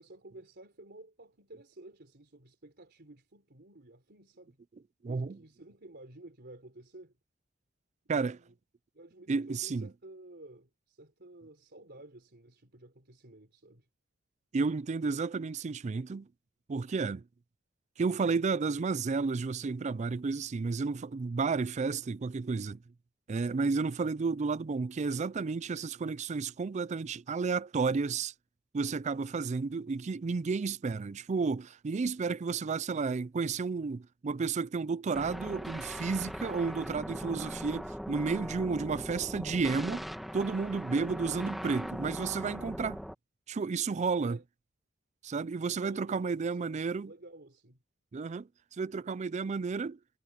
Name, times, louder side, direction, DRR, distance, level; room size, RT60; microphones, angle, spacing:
voice 1, 0.0-4.6 5.1-7.2 8.0-8.5 8.9-13.9 44.2-44.4 45.7-46.7 47.0-47.8, right 2 dB, 55° right, 3.8 m, -52 dB
voice 2, 5.0-5.4 8.1-8.4 9.3-9.9 14.5-16.3 16.7-17.2 18.0-22.8 23.3-28.3 28.7-40.1 40.3-43.0 43.5-44.4 45.2-47.1 48.1-48.5 48.8-50.0, right 4 dB, 35° right, 0.4 m, -32 dB
sound 1, 35.1-43.1, equal, ahead, 2.1 m, -40 dB
head